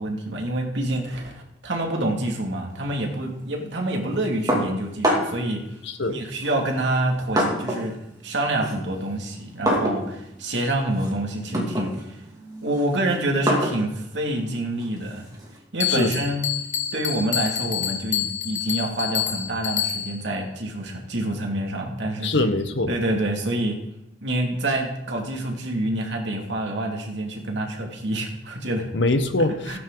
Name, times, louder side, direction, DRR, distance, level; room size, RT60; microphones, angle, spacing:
voice 1, 0.0-5.6 6.1-12.2 12.6-15.3 15.7-16.5 16.9-22.3 22.9-23.8 24.2-28.9 29.7-29.8, right 1 dB, 65° right, 0 dB, 2.6 m, -27 dB
sound 1, 4.5-5.5 6.4-7.9 8.3-15.6, equal, 20° right, 2.7 m, -27 dB
voice 2, 5.8-6.2 15.9-16.1 22.2-22.9 28.9-29.8, left 2 dB, 70° left, 8 dB, 1.3 m, -23 dB
Bell, 15.8-20.3, left 10 dB, 40° left, 1.1 m, -28 dB
17.0 x 9.5 x 4.0 m, 0.85 s
head